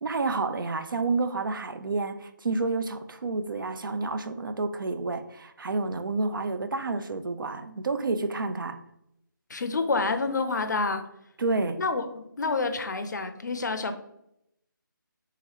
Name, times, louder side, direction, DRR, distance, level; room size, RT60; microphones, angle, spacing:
voice 1, 0.0-8.8 11.4-11.8, right 3 dB, 75° right, 0.4 m, -29 dB
voice 2, 9.5-11.0 11.8-13.9, left 3 dB, 60° left, 0.5 m, -28 dB
3.6 x 2.9 x 3.0 m
figure-of-eight pair, 160°, 11 cm